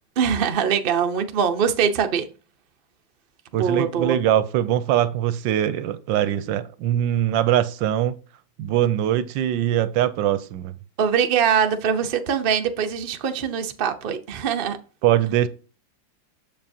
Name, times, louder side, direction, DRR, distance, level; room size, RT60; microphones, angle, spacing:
voice 1, 0.2-2.3 3.5-4.2 11.0-14.8, right 7 dB, 55° right, 0.6 m, -22 dB
voice 2, 3.5-8.1 8.6-10.7 15.0-15.5, right 11 dB, 80° right, 1.3 m, -22 dB
7.4 x 7.0 x 2.7 m
omnidirectional pair, 2.1 m